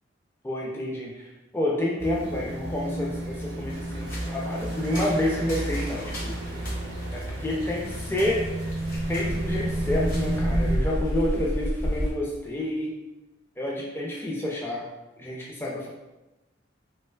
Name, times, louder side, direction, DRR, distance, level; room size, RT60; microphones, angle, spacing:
voice 1, 0.4-6.4 7.1-8.4 9.1-13.0 13.6-14.9 15.2-15.9, left 1 dB, 10° left, -3 dB, 0.4 m, -29 dB
sound 1, 2.0-10.8, right 1 dB, 60° right, 0.5 m, -31 dB
sound 2, 3.7-10.4, left 1 dB, 50° left, 0.9 m, -44 dB
sound 3, 6.0-12.1, equal, 65° left, 1.3 m, -31 dB
3.2 x 3.0 x 2.2 m, 1.0 s
head